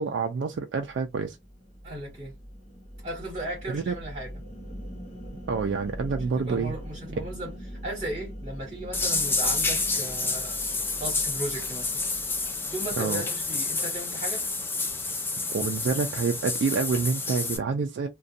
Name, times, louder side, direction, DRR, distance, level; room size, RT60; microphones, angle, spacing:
voice 1, 0.0-1.4 3.7-4.0 5.5-6.7 13.0-13.3 15.5-18.1, right 5 dB, 70° right, 0.3 m, -27 dB
sound 1, 0.8-14.3, equal, 35° left, 0.8 m, -42 dB
voice 2, 1.8-2.3 3.0-4.3 6.4-10.6 11.0-12.1 12.7-14.4, right 1 dB, 35° right, 1.2 m, -36 dB
sound 2, 8.9-17.6, left 3 dB, 10° left, 0.3 m, -29 dB
2.4 x 2.2 x 2.6 m
head